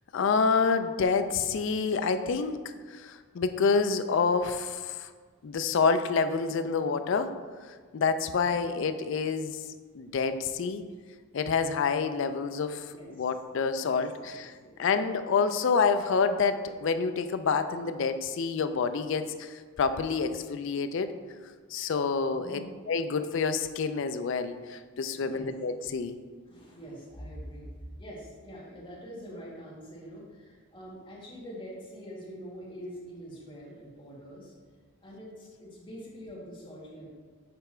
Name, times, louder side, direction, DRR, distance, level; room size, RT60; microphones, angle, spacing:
voice 1, 0.1-5.1 5.4-7.3 7.9-9.6 9.9-10.8 11.3-14.5 14.8-21.1 21.7-22.6 22.9-26.2, left 5 dB, 55° left, 9 dB, 0.3 m, -28 dB
voice 2, 13.8-14.7 22.4-22.7 25.2-25.5 26.5-27.7 28.0-34.5 35.0-37.1, equal, 20° left, -6 dB, 1.5 m, -45 dB
6.9 x 3.4 x 4.3 m, 1.5 s
head